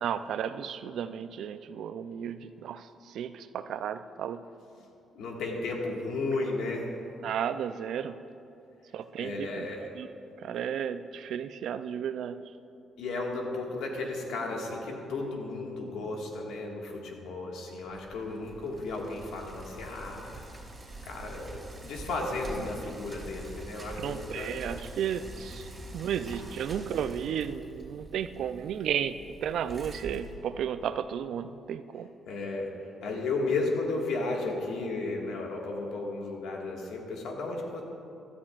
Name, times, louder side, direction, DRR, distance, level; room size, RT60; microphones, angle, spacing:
voice 1, 0.0-4.4 7.2-8.2 8.9-10.1 10.4-12.4 24.0-32.1, right 8 dB, 75° right, 12 dB, 0.4 m, -34 dB
voice 2, 5.1-6.9 9.2-9.9 13.0-20.5 21.1-24.5 32.3-32.7 33.0-37.8, left 3 dB, 80° left, 0 dB, 1.7 m, -34 dB
Bicycle, 17.9-31.0, right 2 dB, 25° right, 3.0 m, -45 dB
16.0 x 12.5 x 2.5 m, 2.7 s
cardioid pair, 90°, 0 cm